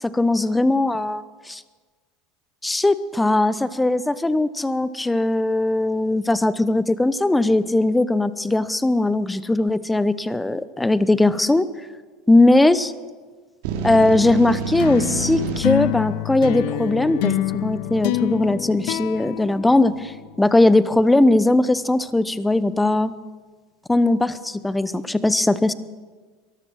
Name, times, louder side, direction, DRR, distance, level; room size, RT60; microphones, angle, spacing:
voice 1, 0.0-1.6 2.6-11.7 12.3-12.9 13.8-23.1 23.9-25.7, left 2 dB, 10° left, 16 dB, 0.8 m, -19 dB
sound 1, 13.6-15.6, right 6 dB, 70° right, 2.7 m, -28 dB
sound 2, 14.8-20.4, left 17 dB, 65° left, 0.5 m, -26 dB
23.0 x 13.5 x 4.6 m, 1.4 s
hypercardioid pair, 85°, 0 cm